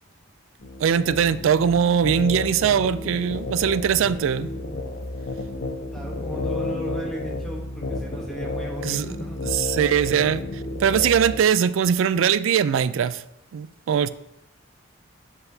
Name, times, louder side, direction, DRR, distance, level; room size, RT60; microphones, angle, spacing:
sound 1, 0.6-11.4, left 2 dB, 50° left, 0.7 m, -31 dB
voice 1, 0.8-4.5 8.8-9.1 9.5-13.2 13.5-14.1, right 8 dB, 75° right, 0.3 m, -21 dB
voice 2, 5.9-9.4, equal, 5° left, 1.0 m, -36 dB
7.9 x 5.6 x 2.7 m
head